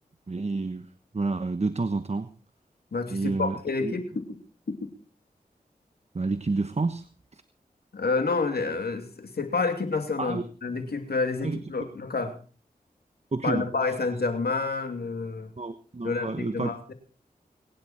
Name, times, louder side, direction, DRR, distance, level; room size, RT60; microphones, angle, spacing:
voice 1, 0.3-0.8 1.1-2.3 3.1-4.0 6.1-7.1 7.3-7.4 10.2-10.4 11.4-11.6 13.3-13.6 15.6-16.7, right 3 dB, 45° right, 11 dB, 1.1 m, -29 dB
voice 2, 2.9-4.2 4.7-4.9 7.9-12.4 13.4-15.5 16.0-16.9, left 4 dB, 80° left, 6 dB, 2.7 m, -29 dB
23.0 x 11.0 x 4.4 m, 0.38 s
cardioid pair, 40°, 16 cm